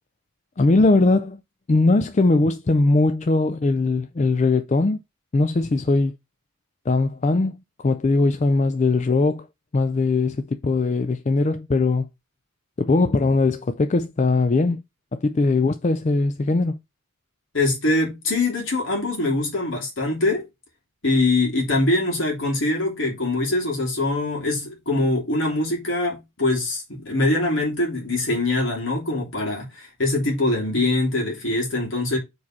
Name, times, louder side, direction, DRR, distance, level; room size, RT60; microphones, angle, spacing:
voice 1, 0.6-1.4 1.7-5.0 5.3-6.1 6.9-9.5 9.7-12.1 12.8-14.8 15.1-16.8, left 3 dB, 30° left, 0.4 m, -20 dB
voice 2, 17.5-20.5 21.0-32.2, left 2 dB, 60° left, 3.1 m, -23 dB
4.8 x 4.8 x 5.8 m
head